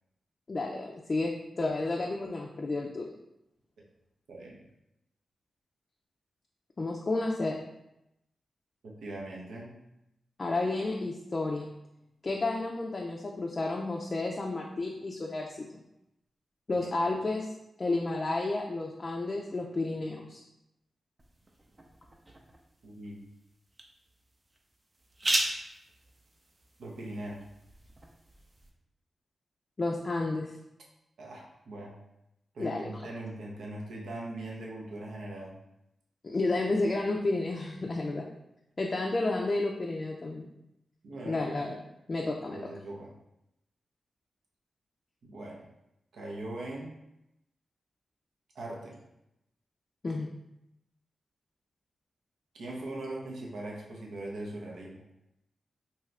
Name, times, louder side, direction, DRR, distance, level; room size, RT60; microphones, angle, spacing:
voice 1, 0.5-3.1 6.8-7.6 10.4-11.7 12.2-15.7 16.7-20.4 29.8-30.5 32.6-33.0 36.2-38.3 38.8-40.5 41.2-41.8 42.1-42.7 50.0-50.3, left 2 dB, 45° left, -1 dB, 0.3 m, -31 dB
voice 2, 8.8-9.8 16.7-17.1 22.8-23.2 26.8-27.4 31.2-32.0 32.5-35.6 41.0-41.4 42.5-43.1 45.2-45.6 46.1-46.9 48.5-49.0 52.5-55.0, right 1 dB, 80° right, -2 dB, 0.6 m, -40 dB
sound 1, 21.2-28.7, right 1 dB, 35° right, 0.5 m, -38 dB
2.7 x 2.4 x 3.2 m, 0.87 s
cardioid pair, 50°, 0 cm